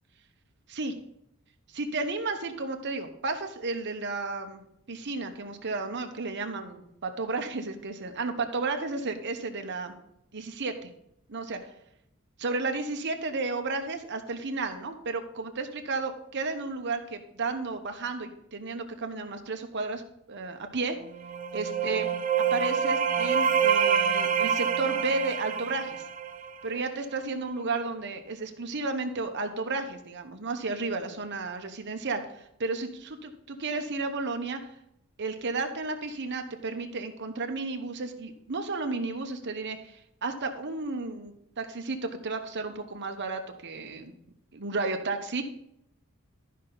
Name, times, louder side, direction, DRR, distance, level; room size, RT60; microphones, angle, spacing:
voice 1, 1.7-4.6 4.9-9.9 10.3-10.9 11.3-11.7 12.4-20.0 20.3-21.0 21.5-22.1 22.5-26.0 26.6-34.6 35.2-44.1 44.5-45.4, right 3 dB, 55° right, 5 dB, 1.0 m, -33 dB
sound 1, 21.1-26.8, right 7 dB, 40° right, 0.6 m, -27 dB
12.5 x 5.6 x 4.0 m, 0.76 s
head